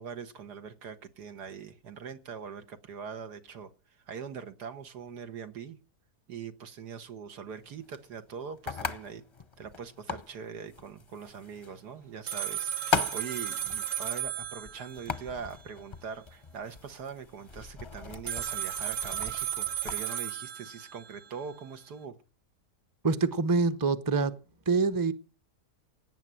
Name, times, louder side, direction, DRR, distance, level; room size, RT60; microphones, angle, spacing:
voice 1, 0.0-3.7 4.1-5.8 6.3-9.2 9.6-22.2, right 6 dB, 90° right, 1.9 m, -42 dB
sound 1, 7.5-20.0, left 6 dB, 30° left, 0.6 m, -39 dB
sound 2, 12.3-15.2 18.3-21.1, right 10 dB, 55° right, 1.2 m, -34 dB
voice 2, 23.0-24.3 24.7-25.1, right 4 dB, 20° right, 0.7 m, -25 dB
17.5 x 9.5 x 7.6 m
omnidirectional pair, 1.7 m